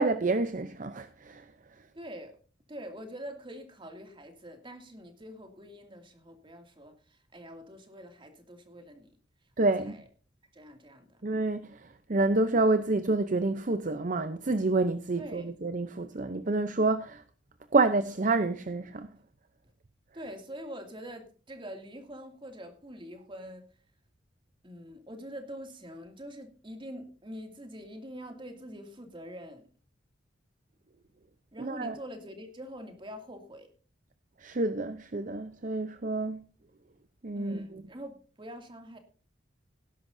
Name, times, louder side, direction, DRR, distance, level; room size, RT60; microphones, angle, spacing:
voice 1, 0.0-1.5 9.6-10.0 11.2-17.2 17.7-19.1 31.6-31.9 34.4-36.4 37.2-37.7, right 3 dB, 45° right, 0.7 m, -28 dB
voice 2, 1.9-2.4 2.7-9.5 9.8-10.0 10.5-11.2 15.2-15.5 20.1-23.7 24.6-29.7 31.5-33.7 37.3-39.0, equal, 25° right, 2.5 m, -45 dB
18.5 x 11.0 x 2.7 m
head